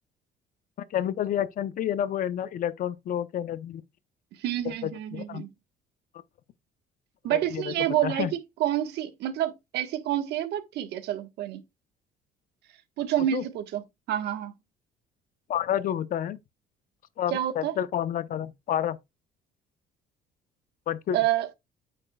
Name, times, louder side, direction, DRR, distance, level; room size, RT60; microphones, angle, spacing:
voice 1, 0.9-3.8 4.6-5.4 7.3-7.7 8.0-8.3 13.3-13.4 15.5-16.4 17.2-19.0 20.9-21.2, left 10 dB, 55° left, 0.7 m, -29 dB
voice 2, 4.4-5.5 7.2-8.3 8.6-11.6 13.0-13.8 14.1-14.5 17.3-17.8 21.1-21.5, right 12 dB, 80° right, 1.3 m, -28 dB
8.8 x 7.6 x 2.3 m
cardioid pair, 110°, 17 cm